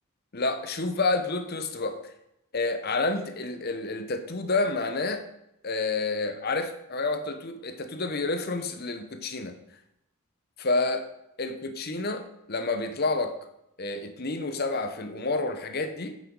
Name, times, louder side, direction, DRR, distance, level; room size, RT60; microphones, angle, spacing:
voice 1, 0.3-2.1 2.5-5.2 5.6-9.6 10.6-11.1 11.4-13.4 13.8-16.1, left 3 dB, 45° left, 8 dB, 0.9 m, -29 dB
8.9 x 6.3 x 5.4 m, 0.82 s
head